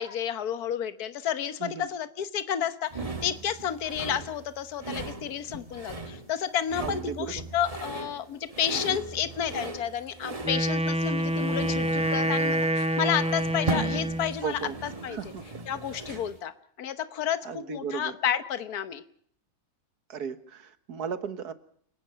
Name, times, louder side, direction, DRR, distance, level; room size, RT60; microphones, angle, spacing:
voice 1, 0.0-12.7 13.0-15.2 15.7-19.0, left 9 dB, 75° left, 12 dB, 1.6 m, -31 dB
sound 1, 2.9-16.4, right 3 dB, 25° right, 1.6 m, -38 dB
voice 2, 6.8-7.4 8.9-9.0 14.4-14.8 15.1-15.4 17.4-18.1 20.1-21.5, right 6 dB, 85° right, 12 dB, 1.9 m, -35 dB
sound 2, 9.8-16.4, right 1 dB, 45° right, 7.8 m, -58 dB
Wind instrument woodwind instrument, 10.4-14.4, right 1 dB, 5° right, 0.6 m, -27 dB
29.5 x 17.5 x 5.7 m, 0.63 s
omnidirectional pair, 1.6 m